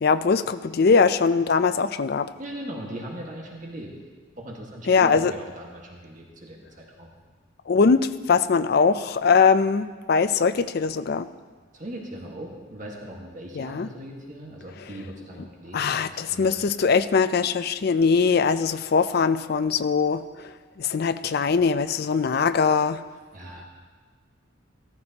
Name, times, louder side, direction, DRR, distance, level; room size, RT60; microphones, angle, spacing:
voice 1, 0.0-2.3 4.9-5.3 7.7-11.3 13.5-13.9 15.7-20.5 20.8-23.0, left 5 dB, 50° left, 13 dB, 0.4 m, -21 dB
voice 2, 2.4-3.9 4.4-7.1 11.7-16.6 23.3-23.6, right 1 dB, 40° right, -2 dB, 1.6 m, -39 dB
14.5 x 14.0 x 2.9 m, 1.4 s
head